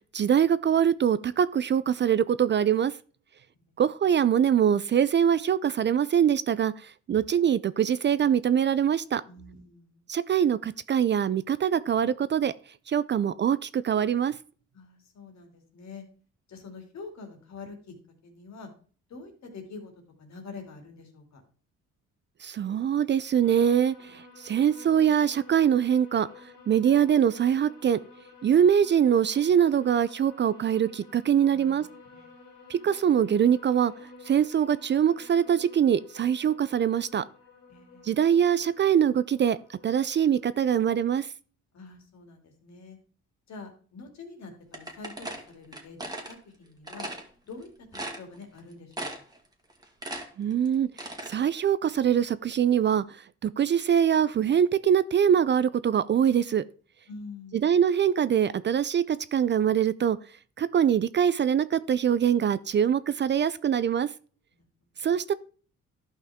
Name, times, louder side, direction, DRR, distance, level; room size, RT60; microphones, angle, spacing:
voice 1, 0.1-2.9 3.8-9.2 10.1-12.5 12.9-14.3 22.4-26.3 26.7-28.0 28.4-31.8 32.7-33.9 34.2-37.2 38.0-41.3 50.4-53.2 53.4-56.6 57.6-60.2 60.6-64.1 65.0-65.3, right 9 dB, 40° right, 0.4 m, -23 dB
voice 2, 9.3-10.0 14.7-16.0 16.5-17.9 18.2-18.7 19.1-19.9 20.2-21.4 31.5-31.8 32.1-32.3 37.7-38.2 41.7-43.0 43.5-46.0 46.3-47.1 47.4-47.7 48.1-49.2 57.1-57.7 64.5-64.7 65.0-65.1, left 4 dB, 65° left, 2.7 m, -45 dB
sound 1, 23.4-41.2, left 4 dB, 80° left, 2.9 m, -51 dB
sound 2, 44.7-46.3 46.9-47.2 47.6-47.7 47.9-48.6 48.9-49.4 49.7-51.4, right 1 dB, 15° right, 1.9 m, -37 dB
12.0 x 5.6 x 3.5 m
cardioid pair, 90°, 30 cm